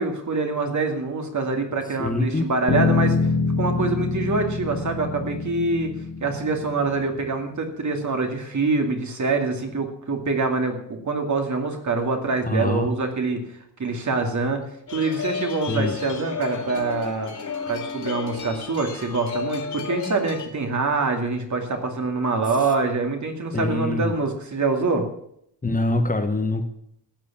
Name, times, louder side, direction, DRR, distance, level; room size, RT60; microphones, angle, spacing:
voice 1, 0.0-3.3 3.6-5.9 6.2-13.4 13.8-14.6 14.9-17.3 17.7-25.1, right 3 dB, 40° right, 4 dB, 2.4 m, -25 dB
voice 2, 2.0-2.5 12.5-12.9 15.7-16.0 23.5-24.1 25.6-26.6, left 2 dB, 20° left, 5 dB, 1.3 m, -24 dB
Bass guitar, 2.7-7.1, left 4 dB, 85° left, 4.0 m, -25 dB
sound 1, 14.9-20.5, left 6 dB, 40° left, 2.6 m, -32 dB
14.5 x 9.6 x 7.3 m, 0.71 s
wide cardioid pair, 180°, 42 cm